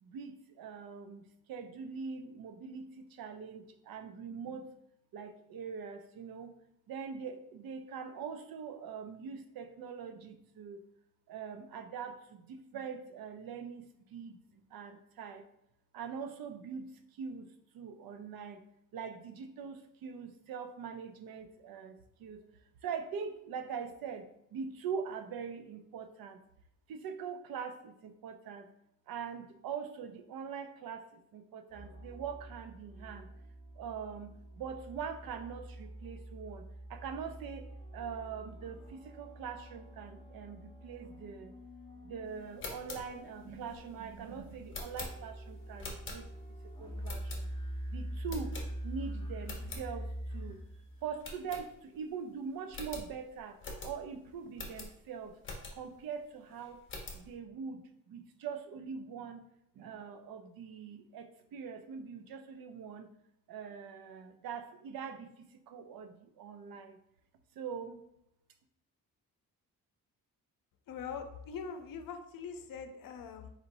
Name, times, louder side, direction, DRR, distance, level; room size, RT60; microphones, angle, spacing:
voice 1, 0.0-4.7 5.1-6.5 6.9-10.8 11.3-14.4 14.7-15.4 15.9-16.9 17.2-17.5 17.7-18.6 18.9-22.4 22.8-24.3 24.5-26.4 26.9-28.7 29.1-33.3 33.8-36.6 36.9-37.7 37.9-41.5 42.0-46.3 46.8-47.5 47.9-48.5 48.8-50.6 51.0-53.6 53.8-55.3 55.7-56.8 57.1-59.5 59.8-63.1 63.5-67.0 67.6-68.0, right 6 dB, 80° right, 7 dB, 0.6 m, -43 dB
sound 1, 31.7-51.1, right 1 dB, 15° left, 1.3 m, -45 dB
sound 2, 42.4-46.6 47.0-47.8 48.3-49.1 49.4-49.9 50.3-50.4 50.6-50.8 51.2-52.1 52.4-52.5 52.7-56.0 56.5-57.3, left 3 dB, 35° left, 0.9 m, -45 dB
voice 2, 70.9-73.5, left 6 dB, 70° left, 7 dB, 0.6 m, -42 dB
4.3 x 4.0 x 2.6 m, 0.79 s
cardioid pair, 135°, 35 cm